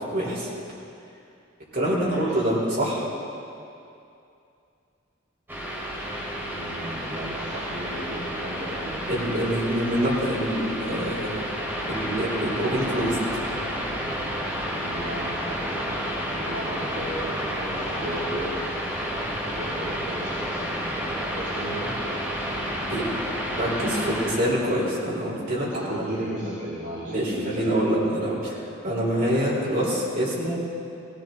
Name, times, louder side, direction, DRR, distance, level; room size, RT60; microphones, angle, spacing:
voice 1, 0.1-0.5 1.7-3.1 9.1-11.4 11.9-13.2 22.9-23.1 23.6-26.1 27.1-30.6, equal, 50° right, -5 dB, 4.3 m, -25 dB
voice 2, 2.0-2.4 6.5-9.0 14.8-18.8 19.6-21.9 23.6-24.3 25.7-27.8, equal, 65° right, -10 dB, 2.9 m, -35 dB
sound 1, 5.5-24.3, equal, 10° right, 2.6 m, -30 dB
18.5 x 16.5 x 4.0 m, 2.6 s
head